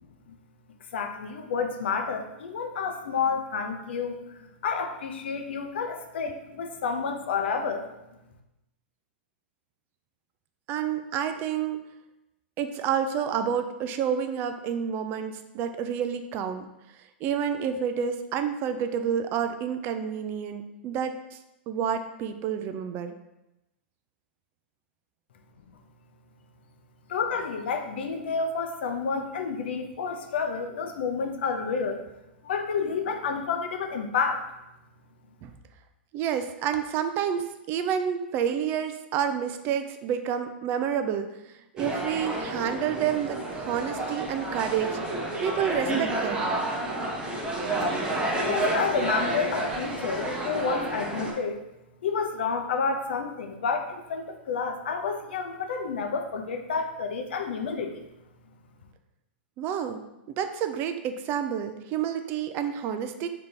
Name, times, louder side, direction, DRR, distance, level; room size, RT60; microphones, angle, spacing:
voice 1, 0.9-7.9 27.1-32.0 32.4-34.4 47.8-47.9 48.4-51.6 52.0-58.0, left 5 dB, 70° left, 5 dB, 0.6 m, -30 dB
voice 2, 10.7-11.8 12.6-16.6 17.2-21.4 21.7-23.1 35.4-35.5 36.1-41.3 41.7-45.0 45.4-46.4 59.6-60.0 60.3-63.3, right 8 dB, 35° right, 8 dB, 0.4 m, -29 dB
sound 1, 41.8-51.3, right 2 dB, 15° right, 0.9 m, -30 dB
3.7 x 2.8 x 3.3 m, 0.92 s
hypercardioid pair, 115°, 6 cm